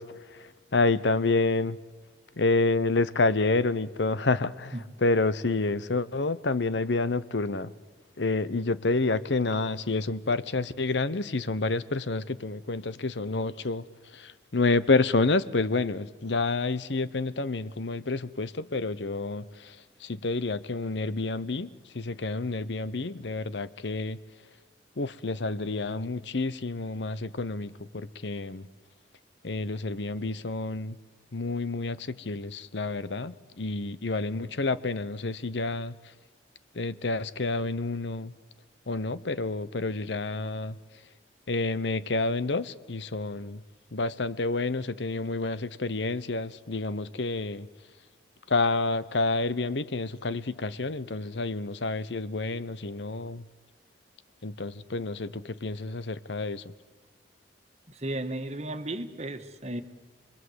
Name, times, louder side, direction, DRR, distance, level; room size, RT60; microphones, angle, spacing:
voice 1, 0.0-1.8 2.4-7.7 8.2-13.8 14.1-21.7 21.9-24.2 25.0-28.7 29.4-31.0 31.3-35.9 36.7-38.3 38.9-40.8 41.5-43.6 43.9-47.7 48.5-53.4 54.4-56.7, left 3 dB, 75° left, 0.9 m, -29 dB
voice 2, 57.9-59.8, right 1 dB, 35° right, 1.5 m, -34 dB
29.0 x 22.0 x 8.0 m
head